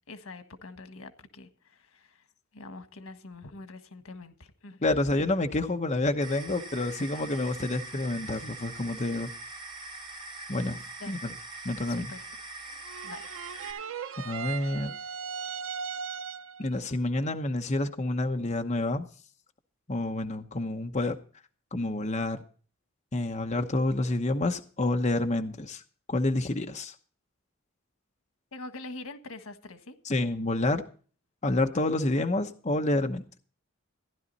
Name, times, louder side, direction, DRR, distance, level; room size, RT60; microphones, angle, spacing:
voice 1, 0.1-2.2 2.5-4.8 11.0-11.2 11.9-12.3 13.0-13.2 28.5-30.0, left 3 dB, 90° left, 1.6 m, -44 dB
voice 2, 4.8-9.3 10.5-10.8 11.1-11.3 11.6-12.1 14.2-14.9 16.6-19.1 19.9-21.2 21.7-22.4 23.1-25.8 26.1-26.9 30.0-30.8 31.4-33.4, left 2 dB, 35° left, 1.0 m, -28 dB
sound 1, 6.2-13.7, right 3 dB, 25° right, 5.5 m, -43 dB
sound 2, 12.8-16.7, right 6 dB, 70° right, 0.5 m, -38 dB
15.5 x 11.0 x 4.1 m
head